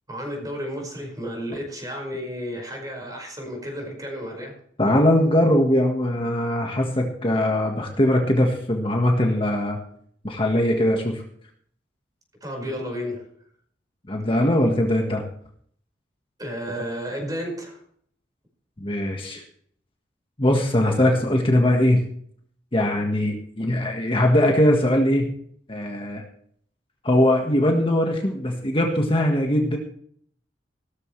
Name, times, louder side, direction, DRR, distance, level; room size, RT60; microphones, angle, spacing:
voice 1, 0.1-4.5 12.4-13.2 16.4-17.8, equal, 20° right, 1 dB, 5.2 m, -32 dB
voice 2, 4.8-9.8 10.2-11.2 14.1-15.2 18.8-19.4 20.4-22.0 22.7-25.3 25.7-26.2 27.0-29.8, left 1 dB, 30° left, 1 dB, 1.6 m, -21 dB
16.5 x 13.5 x 3.3 m, 0.62 s
head